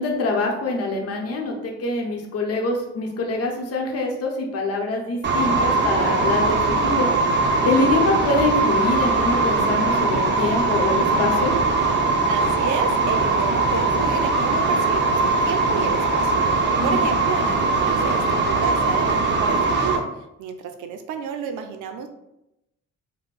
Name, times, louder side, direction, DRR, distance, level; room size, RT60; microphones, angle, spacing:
voice 1, 0.0-7.1 7.6-11.5 16.8-17.0, left 2 dB, 55° left, 0 dB, 0.8 m, -24 dB
sound 1, 5.2-20.0, right 3 dB, 35° right, 0.6 m, -21 dB
voice 2, 12.3-16.3 16.8-18.2 18.5-20.0 20.4-22.1, right 6 dB, 80° right, 6 dB, 0.5 m, -31 dB
4.3 x 2.0 x 2.3 m, 0.86 s
cardioid pair, 90°, 30 cm